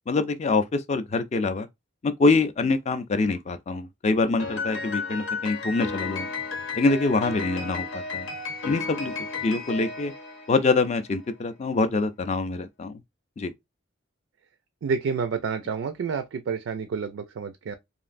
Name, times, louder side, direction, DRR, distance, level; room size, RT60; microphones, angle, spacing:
voice 1, 0.1-1.7 2.0-6.3 6.8-8.3 8.6-9.1 9.4-10.1 10.5-12.9 13.4-13.5, left 3 dB, 35° left, 0.4 m, -25 dB
Piano, 4.4-10.9, left 4 dB, 85° left, 0.9 m, -33 dB
voice 2, 14.8-17.7, right 5 dB, 75° right, 0.4 m, -29 dB
3.0 x 2.5 x 2.5 m
head